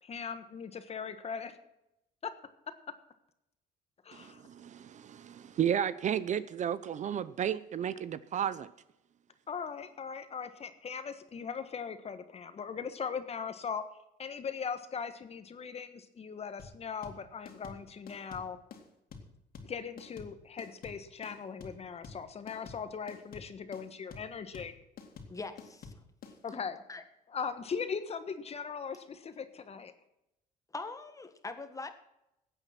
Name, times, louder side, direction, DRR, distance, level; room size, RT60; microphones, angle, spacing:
voice 1, 0.0-1.6 2.2-2.3 2.7-2.8 4.0-4.5 9.5-13.8 14.2-18.6 19.6-24.7 26.4-26.8 27.3-29.9, left 6 dB, 35° left, 1.4 m, -39 dB
voice 2, 4.1-8.7, right 9 dB, 45° right, 0.6 m, -33 dB
sound 1, 16.6-26.4, left 5 dB, 60° left, 2.6 m, -48 dB
voice 3, 25.3-25.9 26.5-26.6 26.9-27.0 30.7-31.9, left 3 dB, 20° left, 1.6 m, -42 dB
15.5 x 9.0 x 5.9 m
cardioid pair, 110°, 17 cm